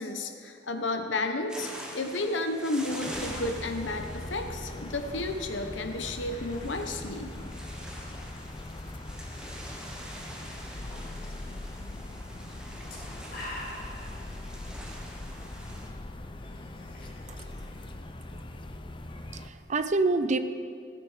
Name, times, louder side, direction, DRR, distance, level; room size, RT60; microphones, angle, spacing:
voice 1, 0.0-1.7 1.9-7.3, left 2 dB, 85° left, 6 dB, 1.0 m, -32 dB
sound 1, 1.5-15.9, equal, 5° right, 1.3 m, -45 dB
sound 2, 3.1-19.5, left 1 dB, 25° left, 0.6 m, -41 dB
sound 3, 4.2-19.7, left 1 dB, 55° left, 3.5 m, -51 dB
voice 2, 17.3-17.6 18.3-18.4 18.8-20.4, right 3 dB, 40° right, 11 dB, 0.5 m, -29 dB
14.5 x 9.1 x 5.0 m, 2.3 s
head